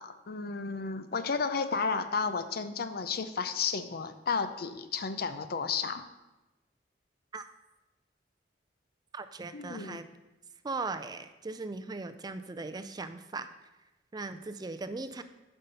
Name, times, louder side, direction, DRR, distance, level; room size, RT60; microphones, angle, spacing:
voice 1, 0.0-6.0 9.5-10.0, left 5 dB, 60° left, 11 dB, 0.6 m, -32 dB
voice 2, 9.1-10.0 10.6-13.5 14.1-15.2, right 3 dB, 25° right, 9 dB, 0.4 m, -38 dB
8.9 x 5.5 x 5.6 m, 1.1 s
head